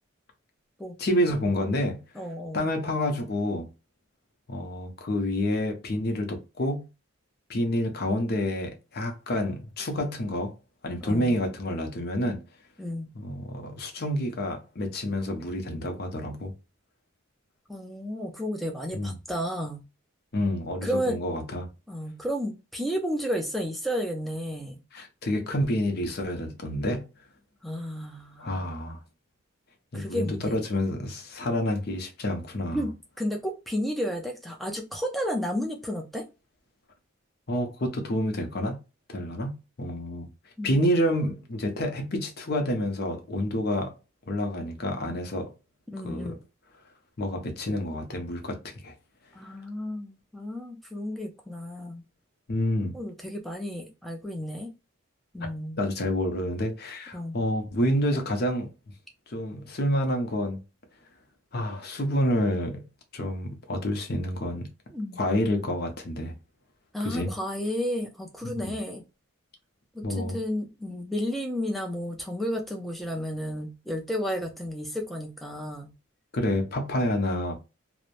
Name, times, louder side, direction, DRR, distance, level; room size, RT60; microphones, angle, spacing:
voice 1, 1.0-2.0 2.5-3.7 4.5-6.9 7.5-10.5 10.8-12.4 13.2-16.5 18.9-19.1 20.3-21.7 24.9-27.1 28.4-29.0 29.9-32.9 37.5-38.8 39.1-39.5 39.8-40.3 40.6-43.9 44.3-45.5 46.0-46.4 47.2-48.9 52.5-52.9 55.8-58.7 59.3-60.6 61.5-62.8 63.1-64.7 65.2-66.3 67.0-67.3 68.4-68.7 70.0-70.4 76.3-77.6, left 1 dB, 50° left, 0.6 m, -28 dB
voice 2, 2.2-2.7 11.0-11.4 12.8-13.1 17.7-19.8 20.8-21.2 21.9-24.8 27.6-29.0 29.9-30.7 32.7-36.3 40.6-40.8 45.9-46.4 49.3-52.0 52.9-54.7 55.3-55.8 57.1-57.4 64.9-65.2 66.9-69.0 69.9-75.9, equal, ahead, 0.4 m, -32 dB
3.0 x 2.0 x 2.4 m
head